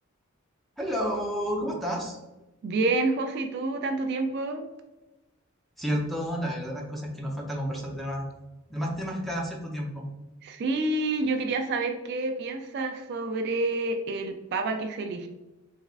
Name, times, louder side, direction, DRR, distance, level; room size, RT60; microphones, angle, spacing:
voice 1, 0.8-2.2 5.8-8.3 8.7-10.1, equal, ahead, -2 dB, 0.6 m, -31 dB
voice 2, 2.6-4.6 10.4-15.3, right 2 dB, 55° right, 5 dB, 0.3 m, -28 dB
3.5 x 3.1 x 2.4 m, 1.0 s
head